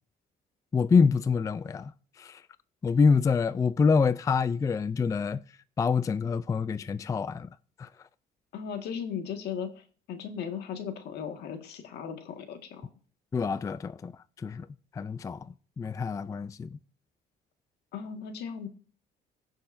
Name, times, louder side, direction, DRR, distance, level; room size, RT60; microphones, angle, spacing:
voice 1, 0.7-1.9 2.2-2.4 2.8-5.4 5.8-7.5 7.8-7.9 13.3-14.1 14.4-14.7 14.9-15.5 15.8-16.8, left 5 dB, 20° left, 0.3 m, -26 dB
voice 2, 8.5-12.9 17.9-18.7, left 7 dB, 75° left, 1.7 m, -37 dB
16.5 x 6.4 x 2.6 m
cardioid pair, 110°, 17 cm